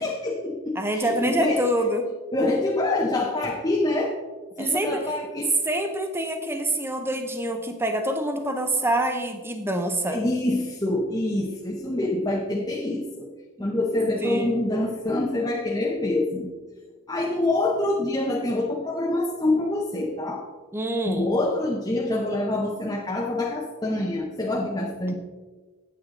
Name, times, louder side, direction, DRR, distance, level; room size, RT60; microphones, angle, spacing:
voice 1, 0.0-1.7 2.3-4.2 4.6-5.5 10.1-13.3 13.6-16.5 17.1-20.5 21.1-25.1, left 2 dB, 20° left, -1 dB, 0.8 m, -26 dB
voice 2, 0.8-2.1 4.6-5.0 5.6-10.2 14.2-14.6 20.7-21.3, right 1 dB, 10° right, 5 dB, 0.8 m, -26 dB
9.2 x 9.1 x 3.8 m, 1.3 s
head